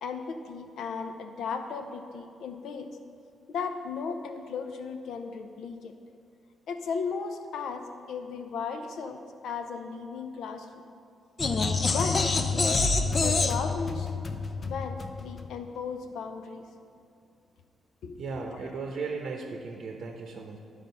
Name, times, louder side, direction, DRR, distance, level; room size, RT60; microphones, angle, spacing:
voice 1, 0.0-2.9 3.5-5.9 6.7-10.7 11.9-12.8 13.2-16.7 18.0-18.3, left 5 dB, 80° left, 6 dB, 0.7 m, -36 dB
sound 1, 11.4-15.6, left 3 dB, 30° left, 0.5 m, -27 dB
voice 2, 18.2-20.6, right 4 dB, 50° right, 2 dB, 0.8 m, -36 dB
11.5 x 5.0 x 5.4 m, 2.4 s
cardioid pair, 140°, 0 cm